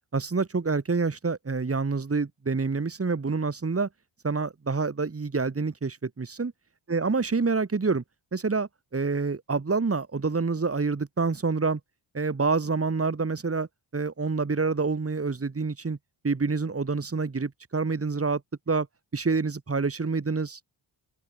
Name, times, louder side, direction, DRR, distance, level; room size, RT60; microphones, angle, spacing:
voice 1, 0.1-3.9 4.2-6.5 6.9-8.0 8.3-11.8 12.1-13.7 13.9-16.0 16.2-18.4 18.7-18.9 19.1-20.6, right 4 dB, 25° right, 5.2 m, -27 dB
open air
wide cardioid pair, 160°, 49 cm